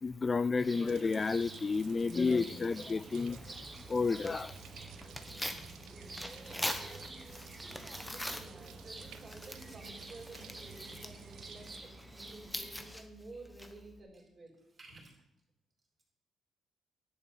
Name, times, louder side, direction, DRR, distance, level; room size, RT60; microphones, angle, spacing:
voice 1, 0.0-3.6 3.9-4.6, left 4 dB, 30° left, 15 dB, 0.3 m, -31 dB
sound 1, 0.6-12.9, right 2 dB, 20° right, 1.4 m, -50 dB
sound 2, 0.9-11.8, right 10 dB, 85° right, 0.4 m, -54 dB
Tearing, 3.3-14.0, left 1 dB, 5° left, 1.1 m, -44 dB
voice 2, 6.2-7.2 7.6-11.9 12.2-15.1, right 2 dB, 35° right, -1 dB, 4.4 m, -53 dB
11.0 x 5.4 x 7.4 m, 0.81 s
cardioid pair, 90°, 0 cm